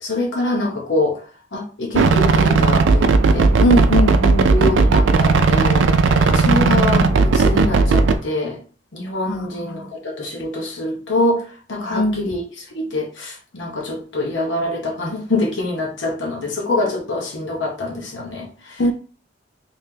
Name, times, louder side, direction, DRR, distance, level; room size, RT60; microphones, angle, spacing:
voice 1, 0.0-1.2 1.5-3.5 4.5-5.9 6.2-8.6 8.9-11.4 11.7-18.8, left 2 dB, 85° left, 0 dB, 0.9 m, -24 dB
sound 1, 1.9-8.2, right 4 dB, 85° right, 0.4 m, -15 dB
voice 2, 3.6-4.5 9.3-9.9 11.9-12.3 18.8-18.9, equal, 70° left, 8 dB, 0.5 m, -20 dB
3.0 x 2.8 x 3.7 m, 0.40 s
head